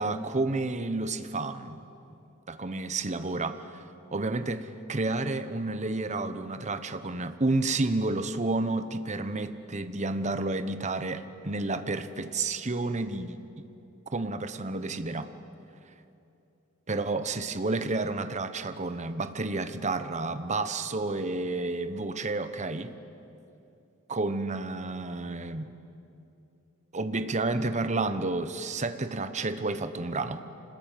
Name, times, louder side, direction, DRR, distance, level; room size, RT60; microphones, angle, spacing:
voice 1, 0.0-1.9 2.5-3.8 4.1-13.7 14.1-15.3 16.9-22.9 24.1-25.7 26.9-30.4, right 2 dB, 30° right, 10 dB, 1.0 m, -30 dB
25.5 x 19.5 x 9.2 m, 2.8 s
head